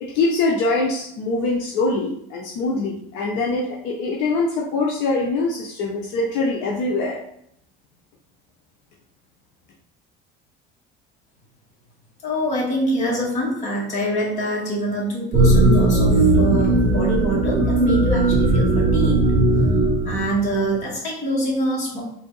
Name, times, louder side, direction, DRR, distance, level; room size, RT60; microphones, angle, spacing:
voice 1, 0.0-7.2, left 3 dB, 65° left, -2 dB, 0.8 m, -23 dB
voice 2, 12.2-19.2 20.0-22.0, equal, 35° left, -4 dB, 1.6 m, -24 dB
sound 1, 15.3-20.7, right 2 dB, 30° right, 0.7 m, -18 dB
4.0 x 2.7 x 3.9 m, 0.71 s
cardioid pair, 165°, 21 cm